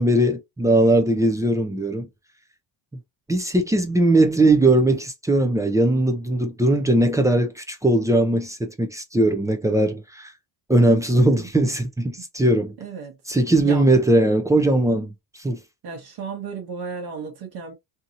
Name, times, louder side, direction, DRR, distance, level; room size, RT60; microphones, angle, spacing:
voice 1, 0.0-2.1 3.3-10.3 10.7-12.8 13.3-15.1 15.4-15.6, right 1 dB, 10° right, 0.3 m, -19 dB
voice 2, 11.2-11.5 12.2-12.3 12.8-13.2 13.6-13.9 15.8-17.7, right 5 dB, 65° right, 1.1 m, -34 dB
2.7 x 2.7 x 2.4 m
cardioid pair, 135°, 42 cm